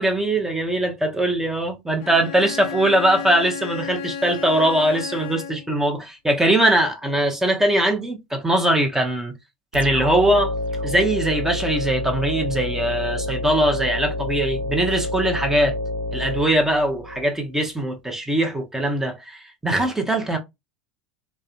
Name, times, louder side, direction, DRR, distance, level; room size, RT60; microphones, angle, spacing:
voice 1, 0.0-9.3 9.7-10.5 10.8-15.8 16.1-20.4, right 1 dB, 10° right, 0.8 m, -21 dB
Bowed string instrument, 2.0-5.8, left 7 dB, 65° left, 0.4 m, -33 dB
sound 1, 9.7-17.2, left 1 dB, 85° right, 0.5 m, -28 dB
2.6 x 2.2 x 2.4 m
hypercardioid pair, 75°, 5 cm